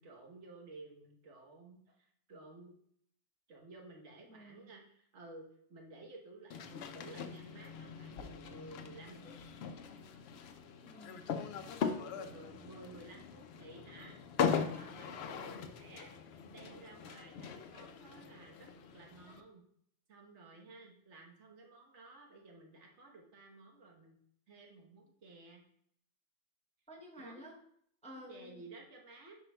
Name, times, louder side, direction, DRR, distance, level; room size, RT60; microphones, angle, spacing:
voice 1, 0.0-2.7 3.5-9.3 11.8-14.1 14.5-16.1 16.5-19.6 20.1-24.2 24.5-25.6 27.2-27.4 28.1-29.4, right 2 dB, 70° right, 1 dB, 1.4 m, -54 dB
voice 2, 4.3-4.7 10.8-11.6 26.9-27.6 28.0-28.7, equal, 5° left, 0 dB, 0.6 m, -52 dB
sound 1, 6.5-19.4, left 6 dB, 65° left, 0.8 m, -40 dB
10.0 x 5.2 x 2.2 m, 0.69 s
omnidirectional pair, 1.2 m